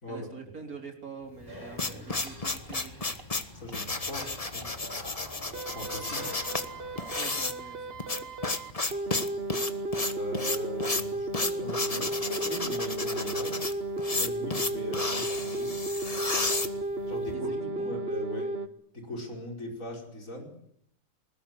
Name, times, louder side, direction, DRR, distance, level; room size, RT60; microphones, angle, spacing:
voice 1, 0.1-3.1 7.2-8.4 17.3-18.0, right 5 dB, 85° right, 2 dB, 4.1 m, -45 dB
sound 1, 1.4-17.3, left 3 dB, 25° left, 1.5 m, -33 dB
sound 2, 1.5-7.3, equal, 15° right, 6.9 m, -47 dB
sound 3, 2.3-2.4 2.7-2.8 3.2-3.3 3.7-3.8 4.1-4.2 4.6-4.7 5.1-5.2 5.5-18.7, right 2 dB, 45° right, 1.4 m, -34 dB
voice 2, 3.5-4.7 5.7-6.3 10.1-13.6 14.1-15.7 17.1-18.6 18.9-20.5, left 1 dB, 65° left, 2 dB, 5.6 m, -40 dB
21.0 x 20.5 x 9.8 m, 0.68 s
omnidirectional pair, 1.5 m